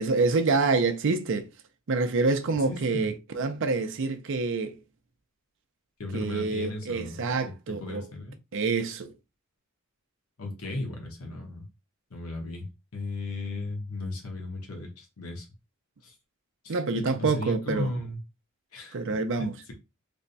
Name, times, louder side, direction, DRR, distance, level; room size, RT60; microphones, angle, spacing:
voice 1, 0.0-1.5 1.9-4.8 6.1-8.0 8.5-9.1 16.7-17.9 18.9-19.6, right 3 dB, 60° right, 0.5 m, -27 dB
voice 2, 2.7-3.1 6.0-8.4 10.4-11.7 12.1-12.7 12.9-15.5 16.0-16.1 16.6-18.2 18.7-19.0 19.4-19.7, left 2 dB, 75° left, 1.1 m, -36 dB
3.4 x 2.2 x 4.0 m
head